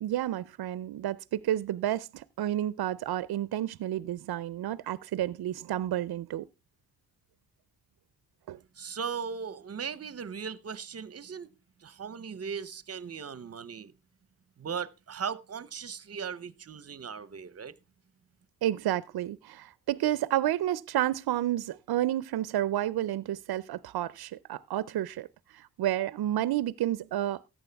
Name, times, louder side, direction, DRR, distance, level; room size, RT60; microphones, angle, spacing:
voice 1, 0.0-6.5 8.5-8.6 18.6-25.3 25.5-27.4, right 13 dB, 75° right, 0.5 m, -30 dB
voice 2, 8.8-11.5 11.8-13.9 14.6-17.7, right 6 dB, 40° right, 0.7 m, -38 dB
14.0 x 8.8 x 3.4 m
cardioid pair, 65°, 37 cm